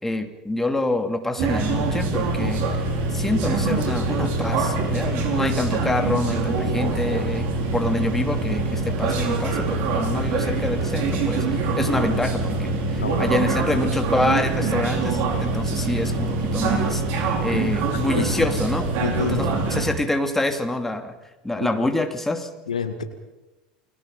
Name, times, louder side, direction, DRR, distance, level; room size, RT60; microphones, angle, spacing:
voice 1, 0.0-2.6 3.1-18.9 19.3-21.1 21.4-22.5, left 2 dB, 10° left, 5 dB, 2.8 m, -26 dB
sound 1, 1.4-19.9, right 3 dB, 55° right, 4.9 m, -24 dB
voice 2, 13.0-13.3 13.8-13.9 17.9-18.5 19.0-19.5 21.6-21.7 22.7-23.0, left 6 dB, 80° left, 8 dB, 2.0 m, -28 dB
29.5 x 22.0 x 5.3 m, 1.1 s
figure-of-eight pair, 80°, 4 cm